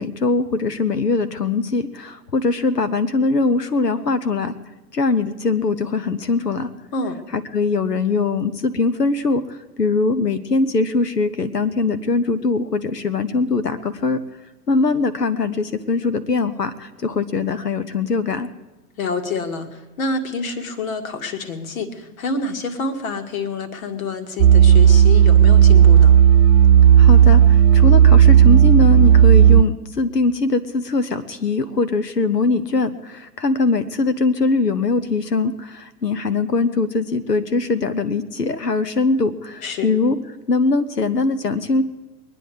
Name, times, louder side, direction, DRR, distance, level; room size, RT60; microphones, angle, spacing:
voice 1, 0.0-4.5 4.9-6.7 7.3-14.2 14.7-18.5 27.0-40.2 40.5-41.8, left 3 dB, 90° left, 11 dB, 0.9 m, -21 dB
voice 2, 19.0-26.1 39.6-39.9, left 3 dB, 60° left, 6 dB, 1.9 m, -27 dB
sound 1, 24.4-29.6, right 9 dB, 55° right, 0.6 m, -11 dB
22.5 x 9.8 x 4.8 m, 1.2 s
figure-of-eight pair, 90°, 47 cm